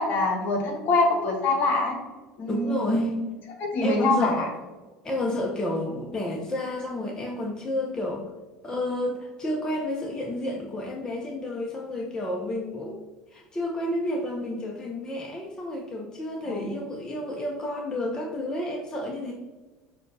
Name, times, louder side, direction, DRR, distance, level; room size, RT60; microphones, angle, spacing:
voice 1, 0.0-2.0 2.4-3.2 3.6-4.5 16.4-16.7, left 2 dB, 50° left, 2 dB, 1.1 m, -24 dB
voice 2, 2.5-3.1 3.8-4.5 5.0-8.2 8.6-13.0 13.3-19.3, left 1 dB, 20° left, -1 dB, 0.6 m, -30 dB
6.3 x 2.3 x 2.6 m, 1.2 s
hypercardioid pair, 85°, 4 cm